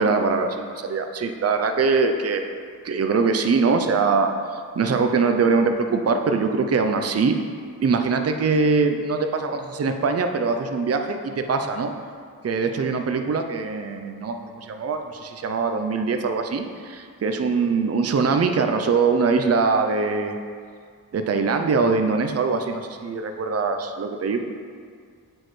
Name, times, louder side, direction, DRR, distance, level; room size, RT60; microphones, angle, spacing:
voice 1, 0.0-2.5 2.8-7.4 7.8-11.9 12.4-20.4 21.1-24.4, right 4 dB, 40° right, 6 dB, 0.6 m, -22 dB
9.0 x 6.3 x 3.2 m, 2.1 s
wide cardioid pair, 75°, 37 cm